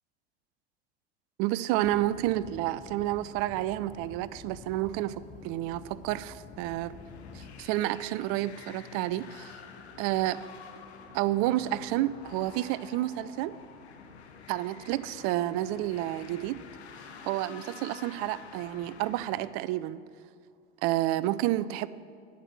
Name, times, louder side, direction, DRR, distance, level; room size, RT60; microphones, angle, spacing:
voice 1, 1.4-7.0 7.3-9.6 10.0-10.4 11.1-13.5 14.5-16.6 17.2-20.0 20.8-21.9, right 15 dB, 45° right, 17 dB, 0.4 m, -30 dB
sound 1, 1.8-7.7, left 5 dB, 25° left, 0.7 m, -49 dB
sound 2, 6.6-19.5, left 6 dB, 75° left, 1.0 m, -49 dB
9.3 x 7.4 x 7.3 m, 2.3 s
figure-of-eight pair, 80°, 33 cm